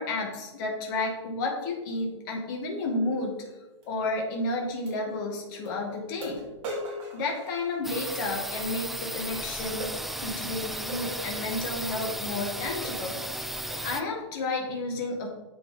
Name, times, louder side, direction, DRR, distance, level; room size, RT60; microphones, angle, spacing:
voice 1, 0.0-3.3 3.8-6.4 7.1-13.2 13.8-15.3, left 2 dB, 40° left, 0 dB, 2.1 m, -31 dB
sound 1, 3.8-3.9 4.9-5.0 5.7-5.8 6.2-8.2 9.8-10.0 10.9-11.1 11.9-12.0 12.4-12.5 12.8-13.1 13.7-13.9, equal, 35° right, 3.5 m, -39 dB
sound 2, 7.8-14.0, right 1 dB, ahead, 0.4 m, -35 dB
8.2 x 6.7 x 5.3 m, 1.1 s
hypercardioid pair, 125°, 16 cm